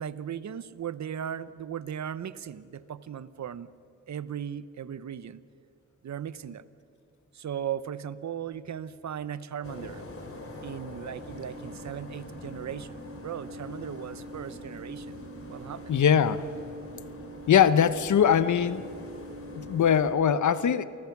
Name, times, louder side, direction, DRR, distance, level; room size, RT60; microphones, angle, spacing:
voice 1, 0.0-3.7 4.1-5.4 6.0-6.7 7.3-10.0 10.6-15.2 15.5-15.9, right 9 dB, 65° right, 16 dB, 0.8 m, -37 dB
sound 1, 9.6-20.2, left 1 dB, 45° left, 3.6 m, -42 dB
voice 2, 15.9-16.5 17.5-18.8 19.5-20.8, left 8 dB, 75° left, 14 dB, 0.9 m, -22 dB
28.5 x 19.0 x 6.0 m, 2.7 s
cardioid pair, 90°, 30 cm